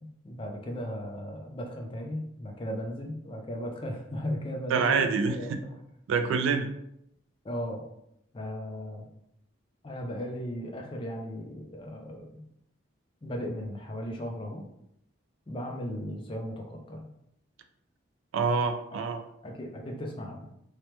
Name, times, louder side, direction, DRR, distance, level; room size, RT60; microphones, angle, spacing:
voice 1, 0.2-5.8 7.4-7.8 8.3-9.1 9.8-12.4 13.2-14.6 15.5-17.1 18.9-19.0 19.4-20.5, equal, 25° left, 2 dB, 0.4 m, -36 dB
voice 2, 4.7-5.6 6.1-6.7 18.3-19.2, right 5 dB, 75° right, 8 dB, 0.3 m, -26 dB
3.2 x 2.1 x 2.9 m, 0.77 s
head